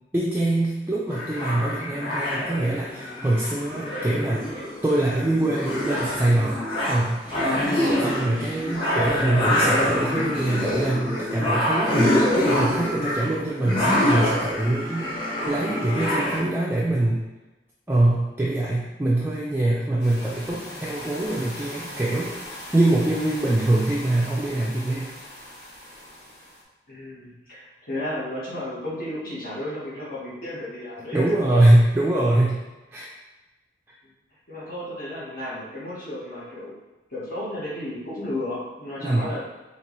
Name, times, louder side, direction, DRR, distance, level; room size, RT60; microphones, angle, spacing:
voice 1, 0.1-4.5 4.8-6.6 6.9-7.2 8.0-15.1 15.5-17.2 17.9-22.3 22.7-25.1 31.1-32.6 32.9-33.1 39.0-39.3, right 1 dB, 10° right, -5 dB, 0.4 m, -23 dB
sound 1, 1.1-16.4, left 1 dB, 25° left, 1.0 m, -25 dB
sound 2, 20.0-26.6, left 1 dB, 65° left, 1.2 m, -40 dB
voice 2, 26.9-31.6 34.5-36.8 37.1-39.4, left 1 dB, 50° left, -8 dB, 1.2 m, -33 dB
4.5 x 2.9 x 3.0 m, 1.1 s
head